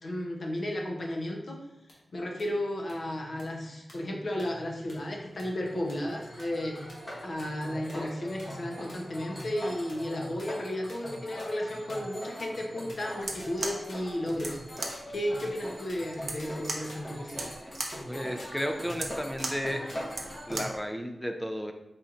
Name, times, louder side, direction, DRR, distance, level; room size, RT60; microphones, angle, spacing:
voice 1, 0.0-1.6 2.1-6.9 7.2-14.6 15.1-17.5, left 1 dB, 55° left, 1 dB, 0.7 m, -33 dB
sound 1, 1.9-2.0 2.4-2.5 2.9-3.0 3.4-3.5 3.9-4.0 4.4-4.5 4.9-5.0 5.4-5.5 5.9-6.0 6.4-6.5 6.9-7.0 7.4-7.5 7.9-8.0 8.4-8.5 8.9-9.0 9.4-9.5 9.9-10.0 10.4-10.5 10.9-11.0 11.4-11.5 11.9-12.0 12.4-12.5 12.9-13.0 13.4-13.5 13.9-14.0 14.4-14.5 14.9-15.0 15.4-15.5 15.9-16.0 16.4-16.5 16.9-17.0 17.4-17.5 17.9-18.0 18.4-18.5 18.9-19.0 19.4-19.5 19.9-20.0, left 1 dB, 85° left, 1.2 m, -48 dB
sound 2, 4.5-20.6, equal, 30° left, 1.3 m, -42 dB
sound 3, 13.1-20.9, right 3 dB, 65° right, 0.6 m, -39 dB
voice 2, 18.1-19.9 20.5-21.7, equal, 5° left, 5 dB, 0.4 m, -33 dB
4.3 x 4.1 x 2.5 m, 0.92 s
wide cardioid pair, 115°, 0 cm